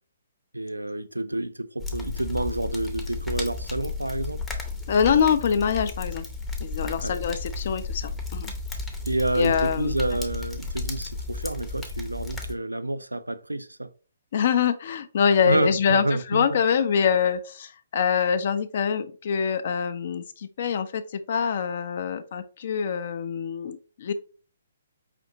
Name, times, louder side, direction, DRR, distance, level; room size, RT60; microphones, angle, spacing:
voice 1, 0.5-4.4 7.0-7.4 9.1-13.9 15.4-16.6, right 1 dB, 80° right, 0.3 m, -29 dB
sound 1, 1.8-12.5, left 3 dB, 5° left, 0.6 m, -33 dB
voice 2, 4.9-6.2 6.6-8.5 9.3-10.0 14.3-24.1, left 7 dB, 45° left, 0.4 m, -25 dB
5.1 x 2.8 x 2.6 m
figure-of-eight pair, 130°, 0 cm